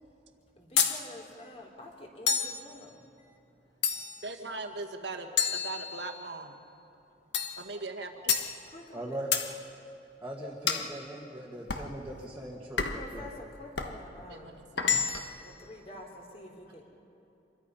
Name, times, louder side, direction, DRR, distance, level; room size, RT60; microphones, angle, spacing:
voice 1, 0.6-3.4 8.7-9.2 13.0-14.6 15.4-16.9, left 1 dB, 35° left, 1 dB, 3.2 m, -48 dB
sound 1, 0.8-1.0 2.3-2.6 3.8-4.3 5.4-6.3 7.3-7.6 8.3-8.5 9.3-9.5 10.7-10.9 11.7-11.9 12.8-13.1 13.8-14.0 14.8-15.4, left 6 dB, 70° left, 1.4 m, -29 dB
voice 2, 4.2-6.6 7.6-8.3 14.3-14.9, right 3 dB, 70° right, 5 dB, 1.8 m, -40 dB
voice 3, 8.9-9.3 10.2-13.3, right 1 dB, 10° right, -4 dB, 1.9 m, -40 dB
27.0 x 22.5 x 5.7 m, 3.0 s
head